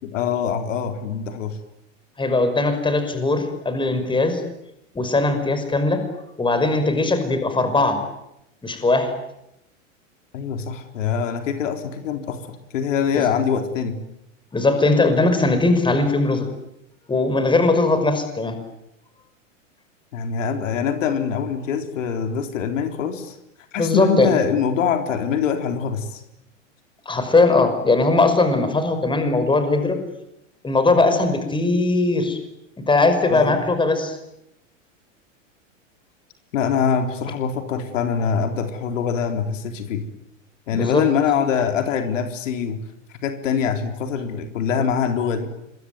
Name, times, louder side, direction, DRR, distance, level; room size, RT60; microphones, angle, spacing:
voice 1, 0.0-1.6 10.3-12.4 12.7-14.0 20.1-23.4 23.7-26.2 33.3-33.6 36.5-40.1 40.7-42.8 43.2-45.5, left 7 dB, 75° left, 6 dB, 3.9 m, -24 dB
voice 2, 2.2-4.4 4.9-6.0 6.4-8.0 8.6-9.1 14.5-16.5 17.1-18.6 23.8-24.3 27.1-30.0 30.6-32.4 32.9-34.2 40.7-41.0, left 3 dB, 10° left, 8 dB, 5.7 m, -19 dB
26.5 x 23.0 x 9.5 m, 0.84 s
hypercardioid pair, 110°, 38 cm